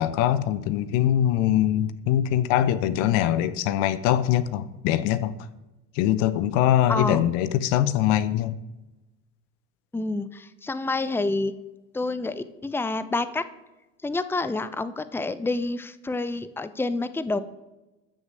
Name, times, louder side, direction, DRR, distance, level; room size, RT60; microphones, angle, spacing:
voice 1, 0.0-5.3 5.9-8.6, left 11 dB, 65° left, 0.9 m, -23 dB
voice 2, 6.9-7.2 9.9-11.5 11.9-13.4 14.0-17.4, left 2 dB, 5° left, 0.8 m, -28 dB
14.0 x 6.3 x 7.7 m
hypercardioid pair, 75°, 37 cm